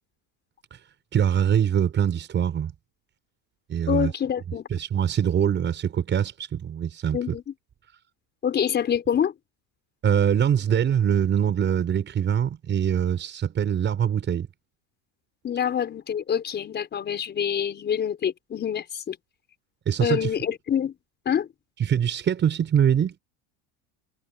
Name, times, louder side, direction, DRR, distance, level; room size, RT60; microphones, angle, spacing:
voice 1, 1.1-2.7 3.7-4.1 4.7-7.3 10.0-14.5 19.9-20.3 21.8-23.1, right 9 dB, 25° right, 6.5 m, -23 dB
voice 2, 3.9-4.7 7.1-7.4 8.4-9.3 15.4-19.2 20.0-20.9 21.3-21.5, left 8 dB, 25° left, 5.5 m, -26 dB
cardioid pair, 165°, 43 cm